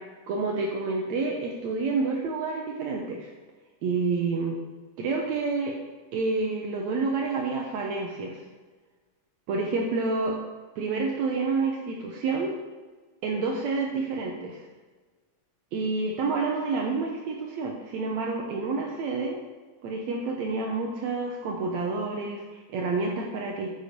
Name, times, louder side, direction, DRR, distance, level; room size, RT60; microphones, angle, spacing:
voice 1, 0.3-3.3 3.8-4.6 5.0-5.7 6.1-8.4 9.5-10.3 10.8-12.5 13.2-14.6 15.7-19.4 19.8-23.7, right 4 dB, 70° right, 0 dB, 2.2 m, -28 dB
9.6 x 6.8 x 6.6 m, 1.3 s
omnidirectional pair, 3.4 m